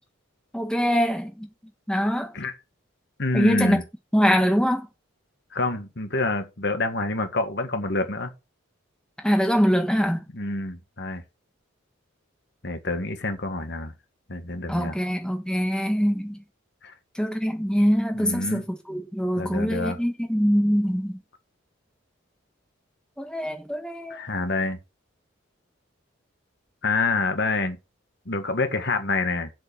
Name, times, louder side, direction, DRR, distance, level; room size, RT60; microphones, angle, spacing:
voice 1, 0.5-1.5 1.9-2.3 3.3-3.8 4.1-4.9 9.2-10.2 14.7-16.4 17.2-18.6 18.9-21.2 23.2-24.2, equal, 5° left, 1.5 m, -23 dB
voice 2, 3.2-3.8 5.5-8.3 10.3-11.2 12.6-13.9 14.3-14.9 16.8-16.9 18.1-18.6 19.4-20.0 24.1-24.8 26.8-27.8 28.2-29.5, left 3 dB, 55° left, 1.7 m, -27 dB
8.0 x 7.8 x 5.9 m
head